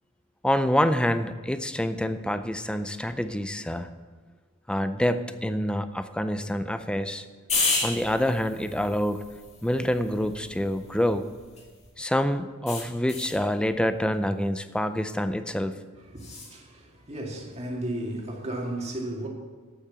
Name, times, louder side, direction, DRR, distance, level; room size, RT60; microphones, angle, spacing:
voice 1, 0.4-3.9 4.7-7.2 7.8-9.3 9.6-11.3 12.0-15.7, left 1 dB, 5° left, 10 dB, 0.4 m, -26 dB
sound 1, 7.5-11.9 12.7-13.4 16.2-16.5, left 3 dB, 30° left, 2.2 m, -33 dB
voice 2, 16.0-19.3, right 1 dB, 30° right, -1 dB, 2.0 m, -34 dB
8.5 x 8.5 x 6.9 m, 1.5 s
head